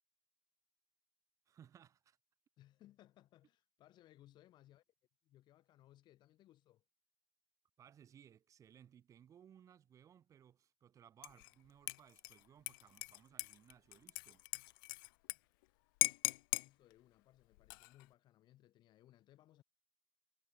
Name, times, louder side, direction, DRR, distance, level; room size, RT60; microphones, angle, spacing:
voice 1, 1.5-2.2 7.8-14.4, right 9 dB, 30° right, 4.0 m, -63 dB
voice 2, 2.6-4.8 5.2-6.8 16.6-19.6, left 14 dB, 40° left, 7.6 m, -65 dB
Dishes pots and pans / Liquid, 11.2-11.5 11.9-15.4 15.6-15.7 16.0-16.7 17.5-18.0, left 24 dB, 75° left, 0.6 m, -39 dB
supercardioid pair, 145°, 11 cm